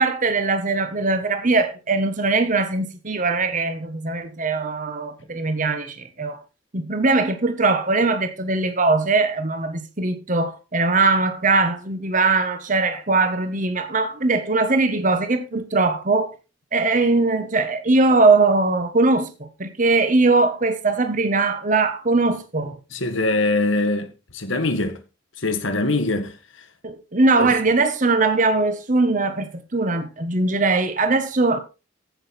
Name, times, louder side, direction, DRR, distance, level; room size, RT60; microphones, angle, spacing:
voice 1, 0.0-6.4 6.7-16.3 16.7-22.8 26.8-31.6, right 3 dB, 40° right, 1.3 m, -20 dB
voice 2, 22.9-25.0 25.4-26.7 27.4-27.5, left 2 dB, 80° left, 1.8 m, -23 dB
15.0 x 6.4 x 4.4 m
head